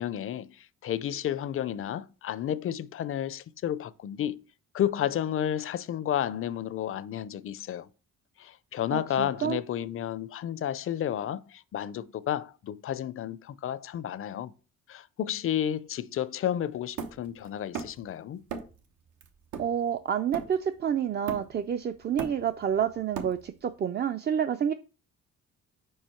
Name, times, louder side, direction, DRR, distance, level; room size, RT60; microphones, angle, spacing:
voice 1, 0.0-4.4 4.7-7.9 8.4-14.5 14.9-18.4, left 10 dB, 45° left, 0.5 m, -31 dB
voice 2, 8.9-9.6 19.6-24.7, right 8 dB, 35° right, 0.4 m, -29 dB
Hammer, 17.0-18.1 18.5-18.8 19.2-20.8 21.3-21.7 22.0-23.7, right 6 dB, 80° right, 1.0 m, -38 dB
4.8 x 4.7 x 4.4 m
cardioid pair, 90°, 30 cm